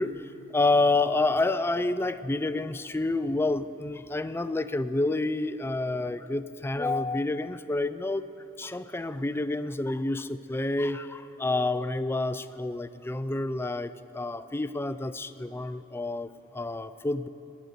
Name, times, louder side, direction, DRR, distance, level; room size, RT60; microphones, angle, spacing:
voice 1, 0.0-8.3 8.6-17.3, left 2 dB, 10° left, 13 dB, 0.3 m, -29 dB
18.5 x 9.3 x 6.8 m, 3.0 s
head